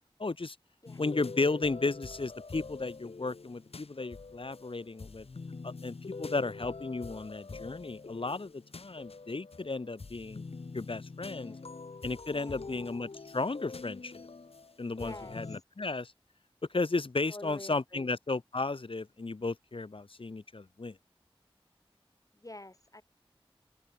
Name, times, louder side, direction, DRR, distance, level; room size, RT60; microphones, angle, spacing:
voice 1, 0.2-0.6 1.0-5.3 5.6-10.4 10.7-11.5 12.0-14.3 14.8-16.1 16.7-21.0, left 3 dB, 65° left, 1.5 m, -34 dB
sound 1, 0.9-15.6, left 4 dB, 80° left, 1.5 m, -45 dB
voice 2, 11.3-11.6 12.3-12.9 15.0-15.6 17.3-18.1 22.3-23.0, left 2 dB, 35° left, 2.3 m, -47 dB
open air
wide cardioid pair, 45°, 10 cm